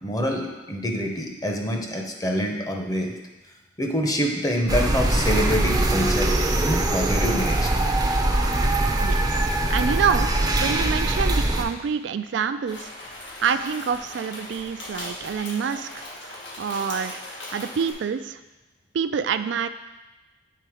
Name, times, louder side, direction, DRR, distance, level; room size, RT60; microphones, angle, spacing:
voice 1, 0.0-3.1 3.8-6.3 6.6-7.8, equal, 20° left, 2 dB, 0.8 m, -26 dB
sound 1, 4.7-11.6, right 1 dB, 20° right, 0.5 m, -22 dB
voice 2, 9.0-17.2 17.5-18.4 18.9-19.7, right 6 dB, 70° right, 11 dB, 0.3 m, -27 dB
sound 2, 12.7-17.9, left 1 dB, 80° left, 1.6 m, -38 dB
7.7 x 3.8 x 4.9 m, 1.1 s
head